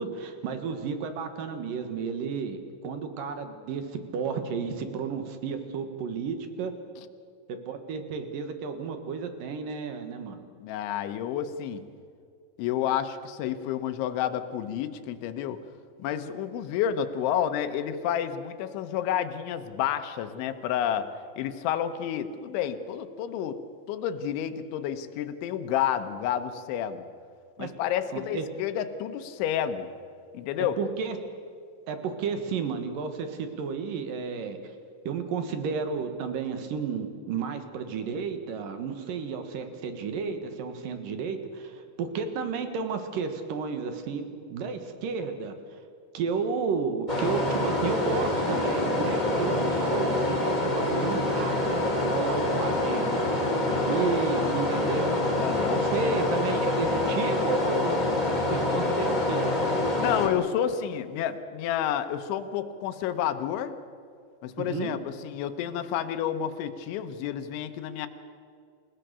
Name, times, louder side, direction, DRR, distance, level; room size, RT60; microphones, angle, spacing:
voice 1, 0.0-6.7 7.5-10.4 27.6-27.7 28.3-28.4 30.8-31.2 31.9-34.6 35.0-45.5 46.1-51.8 52.1-53.0 53.9-55.1 55.7-58.2 58.5-59.5 64.6-65.0, right 5 dB, 60° right, 8 dB, 2.7 m, -32 dB
voice 2, 10.6-11.8 12.6-15.6 16.0-21.1 21.4-23.6 23.9-27.1 27.6-29.9 30.3-30.8 55.4-55.8 60.0-63.8 64.4-68.1, left 10 dB, 85° left, 8 dB, 3.4 m, -30 dB
sound 1, 47.1-60.3, left 1 dB, 15° left, 2.2 m, -26 dB
29.0 x 17.0 x 6.8 m, 2.3 s
omnidirectional pair, 5.2 m